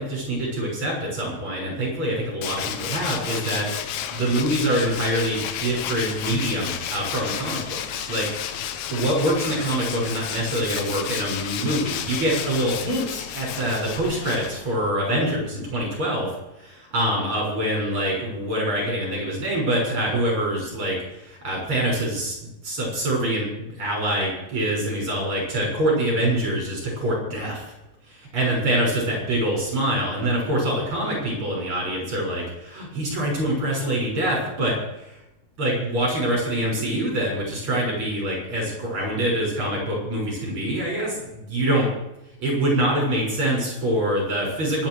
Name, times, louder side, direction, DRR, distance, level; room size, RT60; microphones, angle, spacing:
voice 1, 0.0-16.3 16.6-27.7 28.1-35.2 35.6-41.9 42.4-44.9, right 1 dB, 35° right, -2 dB, 7.2 m, -25 dB
Tools, 2.4-14.9, left 9 dB, 70° left, 2.0 m, -32 dB
25.5 x 10.0 x 4.9 m, 0.90 s
omnidirectional pair, 4.3 m